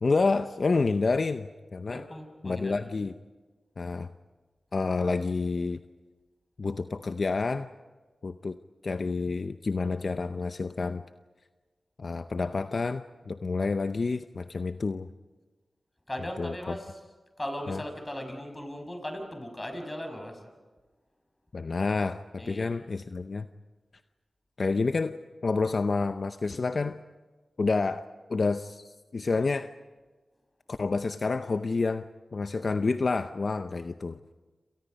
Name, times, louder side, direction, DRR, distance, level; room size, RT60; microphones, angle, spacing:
voice 1, 0.0-2.0 2.4-3.1 3.8-4.1 4.7-5.8 6.6-7.7 8.2-8.6 8.8-11.0 12.0-15.1 16.4-16.5 17.7-17.8 21.5-23.5 24.6-25.2 25.4-27.0 27.6-28.0 28.3-29.7 30.7-34.3, left 3 dB, 60° left, 10 dB, 0.7 m, -29 dB
voice 2, 1.9-2.9 16.1-16.9 17.4-20.4 22.4-22.7, left 1 dB, 20° left, 5 dB, 6.2 m, -38 dB
28.5 x 28.5 x 5.4 m, 1.3 s
cardioid pair, 50°, 0 cm